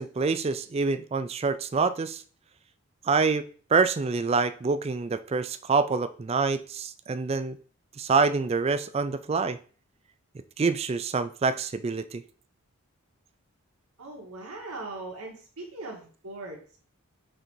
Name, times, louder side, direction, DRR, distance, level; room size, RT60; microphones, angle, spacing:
voice 1, 0.0-2.2 3.0-7.6 8.0-9.6 10.6-12.2, right 4 dB, 25° right, 0.3 m, -26 dB
voice 2, 14.0-16.8, right 2 dB, 85° right, 1.7 m, -40 dB
6.4 x 3.7 x 4.5 m
head